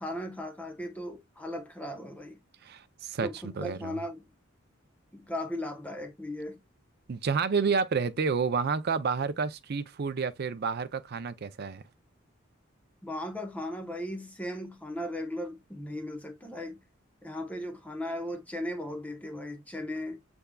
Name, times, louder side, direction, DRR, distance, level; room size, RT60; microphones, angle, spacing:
voice 1, 0.0-2.4 3.2-4.3 5.1-6.6 13.0-16.8 17.2-20.2, left 1 dB, 10° left, 0.8 m, -37 dB
voice 2, 2.6-4.0 7.1-11.8, right 5 dB, 50° right, 0.5 m, -30 dB
6.7 x 3.5 x 2.2 m
head